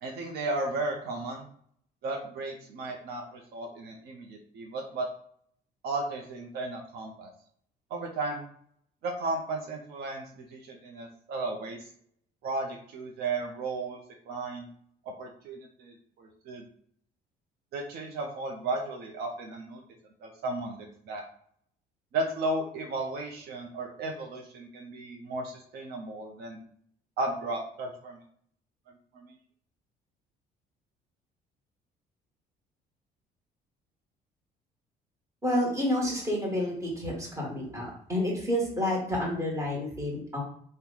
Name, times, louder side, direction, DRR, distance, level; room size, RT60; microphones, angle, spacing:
voice 1, 0.0-1.5 2.0-5.1 5.8-7.3 7.9-8.4 9.0-11.8 12.4-14.0 14.3-14.7 15.2-16.7 17.7-19.8 20.2-21.2 22.1-26.6 27.2-28.2 29.1-29.4, right 2 dB, 70° right, 1 dB, 0.6 m, -34 dB
voice 2, 35.4-40.4, left 1 dB, 20° right, -4 dB, 1.3 m, -29 dB
2.9 x 2.1 x 3.7 m, 0.63 s
cardioid pair, 110°, 17 cm